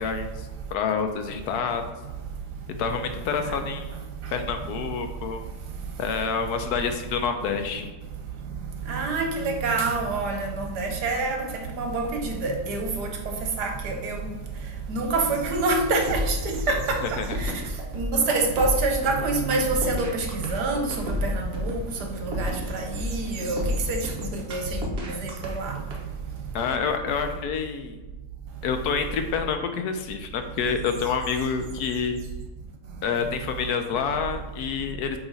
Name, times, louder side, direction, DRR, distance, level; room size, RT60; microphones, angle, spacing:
voice 1, 0.0-1.8 2.8-3.9 4.3-5.4 6.0-7.9 17.2-17.3 26.5-28.0 28.6-32.2 33.0-35.2, left 6 dB, 75° left, 1.1 m, -28 dB
voice 2, 8.9-11.5 11.7-13.1 13.6-14.2 14.9-17.0 17.4-17.5 17.9-23.6 23.9-24.0 24.5-25.7, right 3 dB, 75° right, 1.4 m, -26 dB
sound 1, 16.1-26.0, left 1 dB, 45° right, 1.1 m, -31 dB
7.9 x 2.9 x 4.0 m
omnidirectional pair, 1.8 m